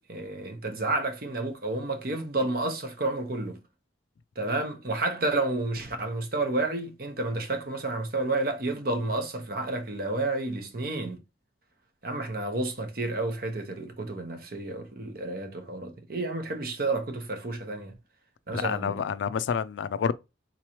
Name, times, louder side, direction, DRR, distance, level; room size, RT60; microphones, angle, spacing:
voice 1, 0.0-3.6 4.4-11.2 12.0-17.9 18.5-19.0, right 2 dB, 50° right, 0.8 m, -30 dB
voice 2, 18.5-20.1, left 7 dB, 75° left, 0.3 m, -28 dB
4.0 x 3.0 x 2.8 m
head